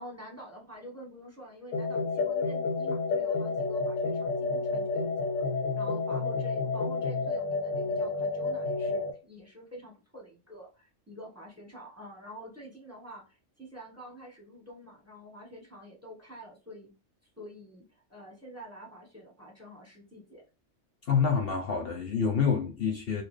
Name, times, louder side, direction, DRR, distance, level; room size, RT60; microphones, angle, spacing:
voice 1, 0.0-16.9 17.2-20.4, equal, 15° right, 1.1 m, -47 dB
sound 1, 1.7-9.1, left 3 dB, 85° left, 0.9 m, -30 dB
voice 2, 21.0-23.2, left 6 dB, 55° left, 0.8 m, -27 dB
4.0 x 2.5 x 3.1 m
omnidirectional pair, 1.3 m